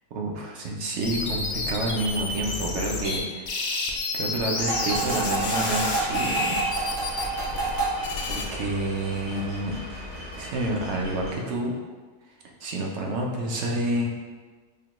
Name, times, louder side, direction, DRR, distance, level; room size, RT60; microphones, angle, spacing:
voice 1, 0.1-3.8 4.1-6.6 8.3-9.8 10.4-11.7 12.6-14.1, right 1 dB, 65° right, 0 dB, 0.7 m, -29 dB
sound 1, 1.0-3.2 3.5-8.4, left 3 dB, 65° left, 0.6 m, -30 dB
sound 2, 4.6-11.3, right 3 dB, 85° right, 1.6 m, -31 dB
5.0 x 2.2 x 3.0 m, 1.4 s
omnidirectional pair, 1.6 m